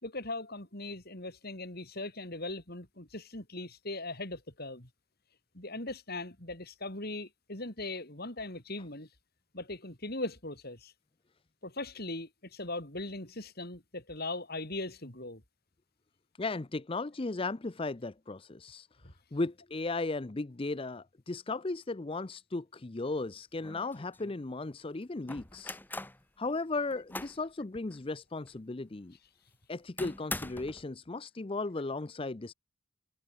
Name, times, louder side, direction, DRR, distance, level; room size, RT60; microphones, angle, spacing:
voice 1, 0.0-4.9 5.5-9.1 9.5-10.9 11.6-15.4 19.0-19.1, left 2 dB, 45° left, 4.1 m, -39 dB
voice 2, 16.4-18.9 19.3-25.8 26.4-29.1 29.7-32.5, left 3 dB, 25° left, 0.5 m, -36 dB
sound 1, 23.2-23.3 23.6-24.4 25.3-26.2 26.7-27.5 27.9-28.0 28.5-28.6 30.0-30.8, left 2 dB, 10° left, 1.8 m, -42 dB
head